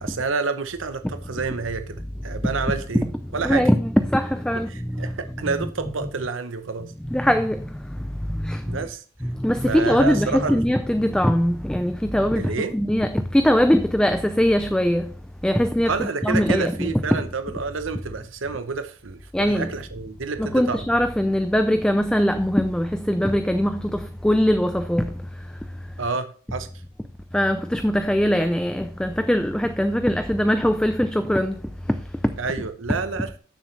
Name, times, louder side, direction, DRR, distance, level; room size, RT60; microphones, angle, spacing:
voice 1, 0.0-3.0 3.3-3.7 4.7-6.9 8.7-9.0 9.7-10.6 12.3-12.7 15.9-20.8 26.0-26.7 32.4-33.3, right 4 dB, 70° right, 0.8 m, -29 dB
voice 2, 3.4-5.1 7.1-7.6 8.4-8.8 9.2-15.1 15.4-17.2 19.3-19.7 20.4-25.1 27.3-31.6, equal, 5° left, 0.4 m, -21 dB
13.0 x 7.2 x 3.3 m
head